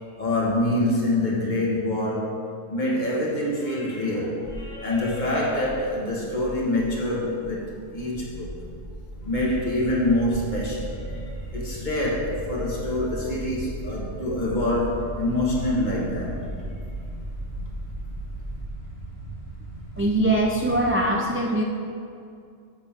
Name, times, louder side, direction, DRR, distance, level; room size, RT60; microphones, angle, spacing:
voice 1, 0.2-2.4 2.7-8.6 9.2-16.4, left 1 dB, 35° left, -4 dB, 1.7 m, -26 dB
sound 1, 4.4-18.7, equal, 20° left, 1.0 m, -38 dB
sound 2, 9.2-21.0, right 2 dB, 65° left, 2.1 m, -39 dB
voice 2, 20.0-21.6, right 1 dB, 20° right, -1 dB, 0.3 m, -22 dB
10.5 x 7.3 x 3.7 m, 2.3 s
omnidirectional pair, 1.3 m